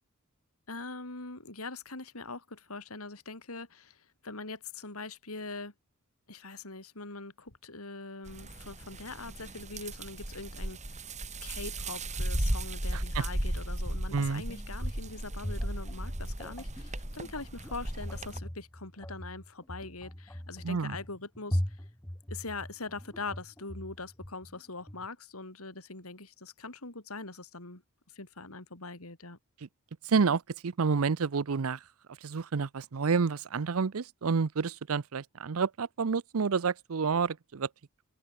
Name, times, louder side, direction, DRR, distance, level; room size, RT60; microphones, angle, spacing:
voice 1, 0.7-5.7 6.3-11.0 11.4-21.8 22.3-27.8 28.1-29.4, left 3 dB, 80° left, 4.0 m, -42 dB
sound 1, 8.3-18.4, right 1 dB, 35° right, 3.5 m, -36 dB
voice 2, 12.9-13.2 14.1-14.4 20.6-21.0 30.0-31.8 32.2-37.7, right 5 dB, 70° right, 0.6 m, -29 dB
sound 2, 14.1-25.1, equal, 10° left, 1.4 m, -40 dB
head